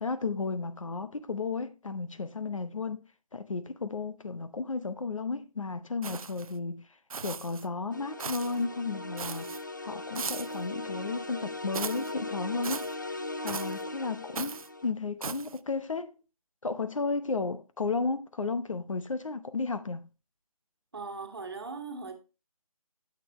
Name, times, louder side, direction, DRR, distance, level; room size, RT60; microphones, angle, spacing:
voice 1, 0.0-3.0 3.3-6.8 7.2-9.5 9.8-12.9 13.4-16.1 16.6-20.1, left 4 dB, 60° left, 0.8 m, -33 dB
sound 1, 6.0-6.5 7.1-7.7 8.2-8.6 9.2-9.6 10.1-10.6 11.7-12.1 12.6-12.9 13.5-13.8 14.3-14.7 15.2-15.6, right 5 dB, 70° right, 0.5 m, -38 dB
sound 2, 7.9-14.9, left 2 dB, 30° left, 0.4 m, -39 dB
voice 2, 20.9-22.1, right 4 dB, 40° right, 1.5 m, -39 dB
8.4 x 6.7 x 3.1 m
hypercardioid pair, 180°, 19 cm